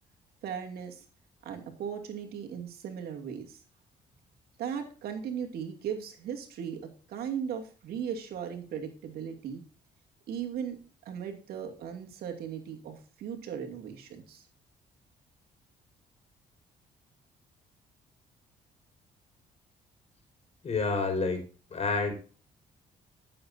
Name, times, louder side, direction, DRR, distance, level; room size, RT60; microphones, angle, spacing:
voice 1, 0.4-1.0 1.4-3.6 4.6-9.6 10.3-10.8 11.0-14.5, right 8 dB, 75° right, 3 dB, 2.5 m, -37 dB
voice 2, 20.6-21.4 21.7-22.1, left 4 dB, 45° left, 4 dB, 4.9 m, -28 dB
14.5 x 7.7 x 2.7 m, 0.38 s
cardioid pair, 85°, 16 cm